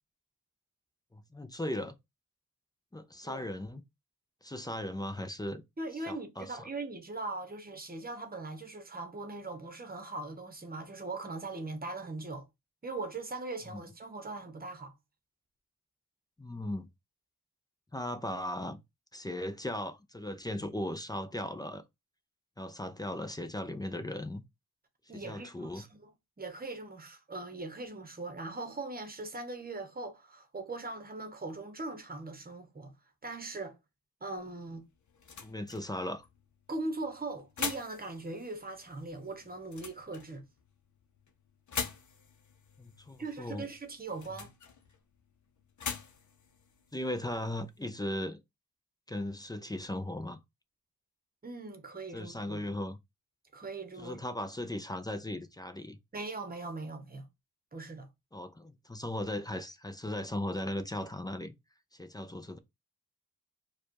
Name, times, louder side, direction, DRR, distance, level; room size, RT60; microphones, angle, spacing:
voice 1, 1.1-1.9 2.9-3.8 4.4-5.6 6.1-6.6 13.7-13.8 16.4-16.9 17.9-18.8 19.1-21.8 22.6-24.4 25.1-25.8 35.4-36.3 42.8-43.6 46.9-48.4 49.1-50.4 52.1-53.0 54.0-56.0 58.3-61.5 61.9-62.6, left 1 dB, 10° left, 0.4 m, -37 dB
voice 2, 5.8-12.5 12.8-14.9 25.1-26.1 26.4-32.9 33.2-33.8 34.2-34.9 36.7-40.4 43.2-44.5 51.4-52.6 53.5-54.2 56.1-57.3 57.7-58.1, right 3 dB, 25° right, 1.0 m, -40 dB
sound 1, 34.4-47.9, left 6 dB, 55° left, 0.8 m, -45 dB
4.7 x 2.4 x 4.6 m
wide cardioid pair, 160°, 36 cm